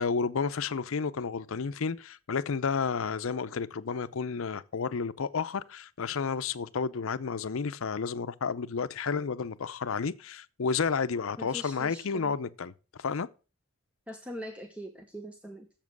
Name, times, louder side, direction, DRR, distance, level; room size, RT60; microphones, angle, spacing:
voice 1, 0.0-12.7 13.0-13.3, left 5 dB, 70° left, 0.5 m, -31 dB
voice 2, 11.4-12.3 14.1-15.7, equal, 5° right, 0.8 m, -42 dB
7.4 x 7.4 x 6.0 m
head